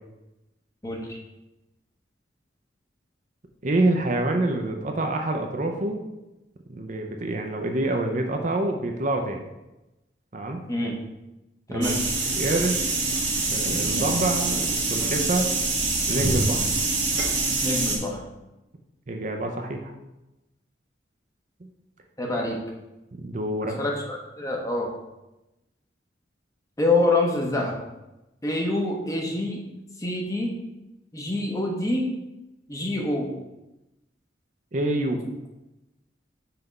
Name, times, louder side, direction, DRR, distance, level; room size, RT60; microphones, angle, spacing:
voice 1, 0.8-1.2 10.7-11.0 11.7-12.0 17.6-18.2 22.2-22.6 23.6-24.9 26.8-27.7 28.4-29.6 30.0-30.6 31.1-32.1 32.7-33.3, left 2 dB, 20° left, 0 dB, 1.0 m, -26 dB
voice 2, 3.6-6.0 6.7-9.4 10.3-10.6 11.7-11.9 12.2-12.9 13.5-15.5 16.1-16.7 19.1-19.9 21.6-21.7 23.2-23.8 34.7-35.2, right 2 dB, 45° right, 3 dB, 0.6 m, -26 dB
sound 1, 11.8-18.0, right 3 dB, 90° right, 1.5 m, -25 dB
5.8 x 3.4 x 5.3 m, 0.97 s
head